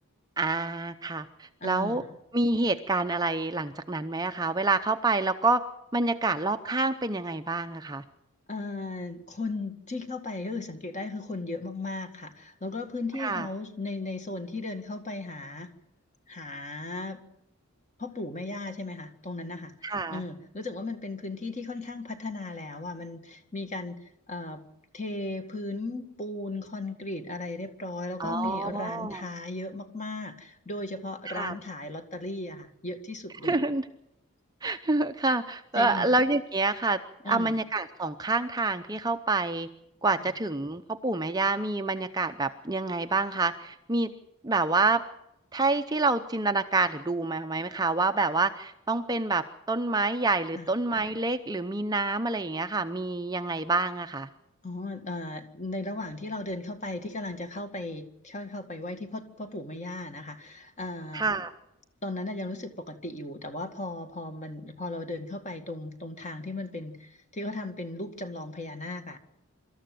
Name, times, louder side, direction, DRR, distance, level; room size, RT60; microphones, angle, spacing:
voice 1, 0.4-2.0 2.3-5.6 5.9-8.0 13.2-13.5 19.8-20.2 28.2-29.2 31.3-31.5 33.4-33.8 34.6-37.0 37.2-39.7 40.0-44.1 44.4-45.0 45.5-54.3 61.1-61.5, right 3 dB, 15° right, 8 dB, 0.7 m, -27 dB
voice 2, 1.6-2.2 8.5-15.7 16.3-17.2 18.0-24.6 24.9-33.7 35.7-36.1 37.2-37.5 40.2-40.3 50.5-50.7 54.6-61.2 62.0-69.2, left 2 dB, 30° left, 7 dB, 2.0 m, -36 dB
25.5 x 13.5 x 7.7 m, 0.83 s
head